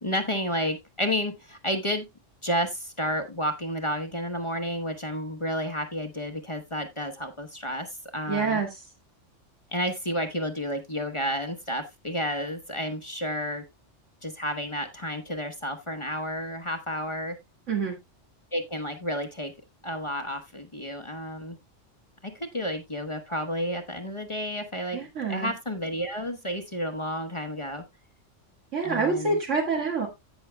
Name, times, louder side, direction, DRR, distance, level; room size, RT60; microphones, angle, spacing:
voice 1, 0.0-2.1 2.4-8.6 9.7-13.6 14.2-17.4 18.5-19.5 19.8-21.6 22.2-25.0 25.3-27.8 28.8-29.4, equal, 25° left, 7 dB, 1.0 m, -31 dB
voice 2, 8.3-8.8 17.7-17.9 24.9-25.5 28.7-30.1, right 4 dB, 75° right, 0 dB, 2.1 m, -27 dB
16.0 x 6.2 x 2.2 m, 0.20 s
omnidirectional pair, 1.3 m